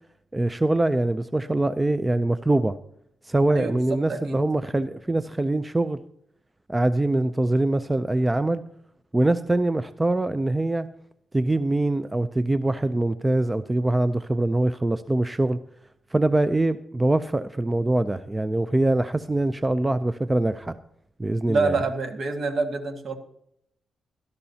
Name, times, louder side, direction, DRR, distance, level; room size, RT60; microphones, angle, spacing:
voice 1, 0.3-2.8 3.2-6.0 6.7-8.6 9.1-10.9 11.3-15.6 16.1-20.8 21.2-21.8, right 2 dB, 15° right, 13 dB, 0.4 m, -23 dB
voice 2, 3.5-4.4 21.5-23.2, right 3 dB, 55° right, 6 dB, 1.7 m, -27 dB
17.5 x 13.0 x 2.8 m, 0.73 s
cardioid pair, 125°, 0 cm